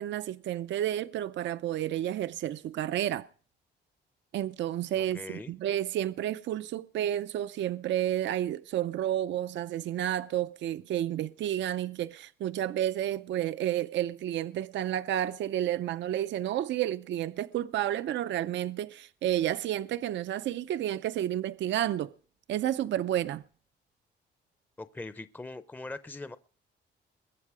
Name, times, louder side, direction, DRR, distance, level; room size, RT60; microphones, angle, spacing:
voice 1, 0.0-3.3 4.3-22.1 22.5-23.4, right 12 dB, 65° right, 0.5 m, -31 dB
voice 2, 4.9-5.5 24.8-26.4, left 2 dB, 10° left, 0.6 m, -41 dB
22.0 x 8.0 x 4.9 m
cardioid pair, 90°, 20 cm